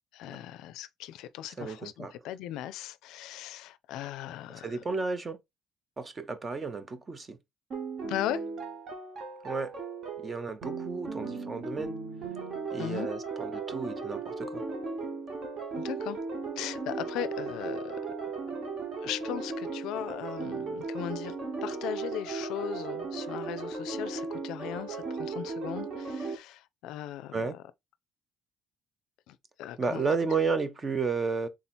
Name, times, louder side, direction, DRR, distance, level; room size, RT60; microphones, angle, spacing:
voice 1, 0.1-4.8 8.1-8.4 12.8-13.1 15.8-16.2 16.6-18.0 19.0-27.6 29.3-30.0, left 12 dB, 90° left, 0.4 m, -38 dB
voice 2, 1.6-2.1 4.6-5.4 6.0-7.4 9.4-9.7 10.2-11.9 12.7-14.6 27.3-27.6 29.8-31.5, right 4 dB, 20° right, 0.5 m, -32 dB
sound 1, 7.7-26.4, right 4 dB, 40° right, 1.2 m, -36 dB
3.7 x 2.8 x 4.2 m
cardioid pair, 170°, 0 cm